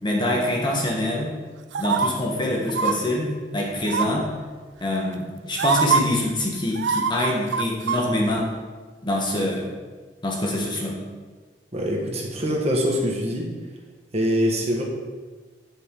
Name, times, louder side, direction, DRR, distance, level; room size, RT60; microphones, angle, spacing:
voice 1, 0.0-1.4 1.8-4.3 4.8-8.5 9.0-9.7 10.2-11.0, left 1 dB, 25° left, -1 dB, 1.3 m, -25 dB
sound 1, 1.7-2.1 2.7-2.9 3.9-4.3 5.1-5.2 5.6-6.0 6.8-8.0 8.3-8.4, right 6 dB, 80° right, 0.4 m, -23 dB
voice 2, 11.7-13.5 14.1-14.8, equal, 35° right, -1 dB, 1.4 m, -24 dB
7.9 x 7.8 x 3.8 m, 1.4 s
head